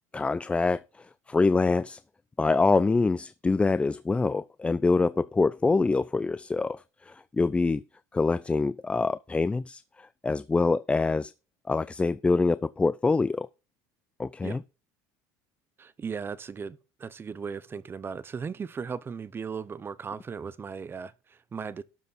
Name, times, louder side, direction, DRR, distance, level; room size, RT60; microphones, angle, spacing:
voice 1, 0.1-2.0 2.4-7.8 8.1-11.3 11.7-13.5 14.2-14.6, left 3 dB, 15° left, 0.4 m, -25 dB
voice 2, 15.8-21.8, right 6 dB, 25° right, 0.8 m, -37 dB
12.0 x 6.7 x 4.1 m
supercardioid pair, 100°, 9 cm